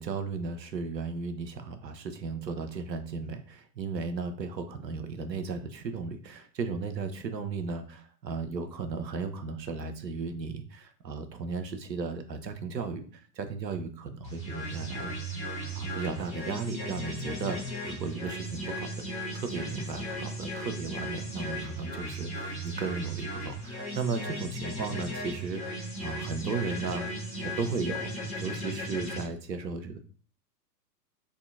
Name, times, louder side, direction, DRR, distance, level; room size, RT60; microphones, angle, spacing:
voice 1, 0.0-15.2 15.7-27.1 27.4-28.1 28.4-30.0, right 4 dB, 80° right, 8 dB, 0.7 m, -35 dB
sound 1, 14.2-29.2, equal, 15° left, 1.2 m, -36 dB
3.6 x 2.3 x 2.3 m, 0.43 s
figure-of-eight pair, 105°, 49 cm